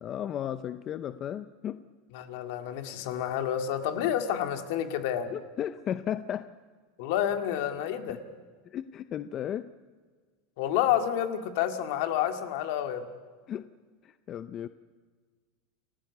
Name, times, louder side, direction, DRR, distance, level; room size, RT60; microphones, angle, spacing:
voice 1, 0.0-1.8 5.3-6.5 8.6-9.7 13.5-13.7 14.0-14.7, left 10 dB, 30° left, 12 dB, 0.6 m, -35 dB
voice 2, 2.1-5.3 7.0-8.2 10.6-13.0, left 10 dB, 65° left, 7 dB, 2.1 m, -29 dB
29.0 x 15.0 x 8.3 m, 1.5 s
supercardioid pair, 155°, 0 cm